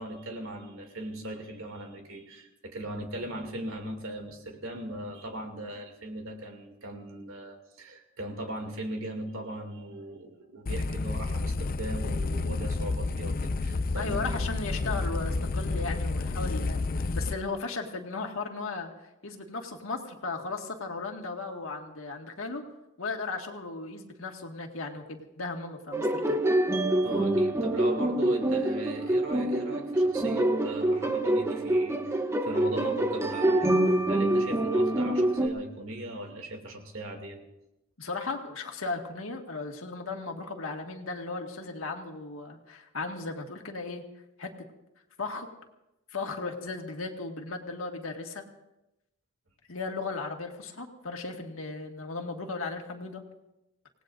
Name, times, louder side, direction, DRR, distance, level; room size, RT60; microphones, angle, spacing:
voice 1, 0.0-14.4 27.0-37.4, right 1 dB, 80° right, 3 dB, 2.6 m, -39 dB
sound 1, 10.7-17.3, left 3 dB, 45° left, 0.5 m, -30 dB
voice 2, 13.9-18.9 19.2-22.6 23.0-26.4 38.0-44.0 44.4-44.5 45.2-45.5 46.1-48.4 49.7-53.2, left 3 dB, 85° left, 3 dB, 1.9 m, -36 dB
sound 2, 25.9-35.5, right 1 dB, 15° right, 0.8 m, -26 dB
26.5 x 18.0 x 2.6 m, 0.90 s
head